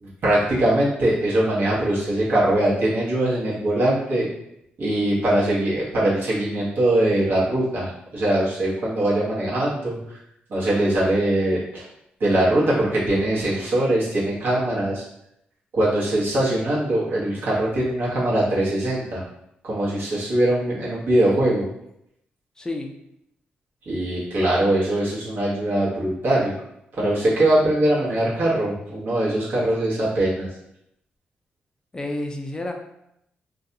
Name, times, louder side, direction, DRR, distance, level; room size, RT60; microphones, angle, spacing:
voice 1, 0.0-4.3 4.8-10.2 10.5-11.9 12.2-15.0 15.7-19.2 19.6-21.7 23.9-26.5 26.9-30.5, right 1 dB, 65° right, -7 dB, 1.0 m, -22 dB
voice 2, 22.6-22.9 31.9-32.7, left 2 dB, 20° left, 4 dB, 0.4 m, -29 dB
2.6 x 2.2 x 2.6 m, 0.79 s
cardioid pair, 75°, 4 cm